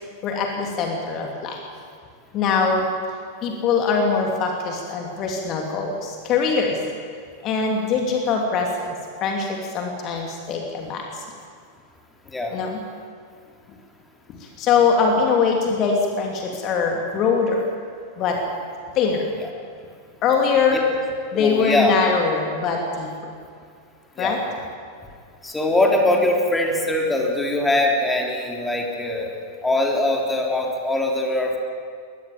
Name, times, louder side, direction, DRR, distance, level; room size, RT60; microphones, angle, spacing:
voice 1, 0.2-1.6 2.3-2.9 3.4-6.8 7.4-11.2 12.5-12.8 14.4-17.7 18.2-18.4 18.9-19.3 20.2-20.9 21.3-23.3 24.2-24.4, left 5 dB, 35° left, 1 dB, 3.0 m, -22 dB
voice 2, 21.3-21.9 24.2-24.4 25.4-29.3 29.6-31.6, left 1 dB, 10° left, 0 dB, 3.7 m, -22 dB
22.5 x 19.5 x 7.5 m, 2.2 s
figure-of-eight pair, 90°, 0 cm